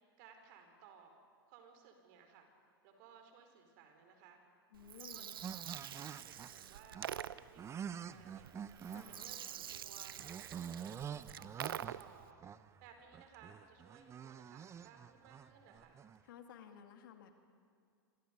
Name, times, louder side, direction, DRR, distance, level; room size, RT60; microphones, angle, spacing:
voice 1, 0.2-1.1 1.5-2.5 2.8-4.4 5.0-5.5 5.8-10.2 10.5-12.4 12.8-16.0, right 6 dB, 55° right, 5 dB, 4.6 m, -61 dB
voice 2, 4.7-5.4 8.8-9.3 16.2-17.4, left 8 dB, 65° left, 6 dB, 2.4 m, -55 dB
Gurgling, 4.7-12.3, right 10 dB, 75° right, 0.7 m, -46 dB
sound 1, 5.4-16.2, right 8 dB, 25° right, 0.7 m, -48 dB
27.0 x 25.5 x 5.4 m, 2.3 s
hypercardioid pair, 95°, 12 cm